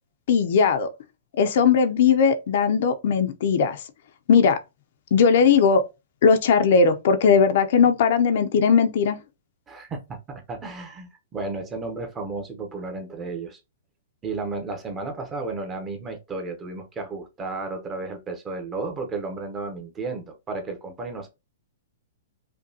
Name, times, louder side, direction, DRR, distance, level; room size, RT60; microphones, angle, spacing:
voice 1, 0.3-0.9 1.4-3.8 4.3-4.6 5.1-5.8 6.2-9.2, left 6 dB, 55° left, 0.5 m, -18 dB
voice 2, 9.7-13.6 14.2-21.3, right 3 dB, 15° right, 0.8 m, -33 dB
5.1 x 2.3 x 2.7 m
hypercardioid pair, 155°, 0 cm